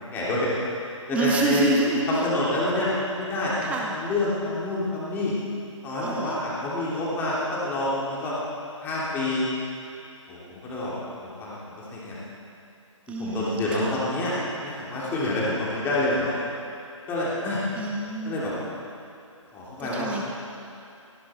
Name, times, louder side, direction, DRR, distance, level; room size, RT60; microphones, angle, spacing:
voice 1, 0.1-0.5 1.1-1.7 2.1-5.3 5.8-8.3 8.8-9.5 10.3-10.9 11.2-12.2 13.2-16.4 17.1-17.6 18.2-18.5 19.5-20.2, left 2 dB, 10° left, -7 dB, 3.2 m, -27 dB
voice 2, 1.1-2.3 3.6-3.9 6.0-6.4 13.1-14.0 17.8-18.4 19.8-20.2, right 2 dB, 10° right, 0 dB, 1.3 m, -27 dB
17.5 x 16.5 x 4.6 m, 2.7 s
figure-of-eight pair, 145°, 17 cm